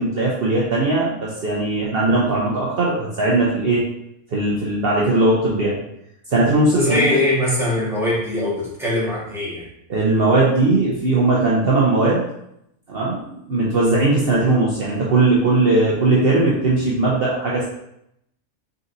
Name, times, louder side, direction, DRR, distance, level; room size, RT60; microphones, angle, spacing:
voice 1, 0.0-3.8 4.3-5.8 6.3-7.1 9.9-12.2 12.9-17.6, right 2 dB, 55° right, -5 dB, 0.9 m, -19 dB
voice 2, 6.7-9.7, left 1 dB, ahead, -8 dB, 1.3 m, -21 dB
3.9 x 3.9 x 2.6 m, 0.78 s
omnidirectional pair, 1.3 m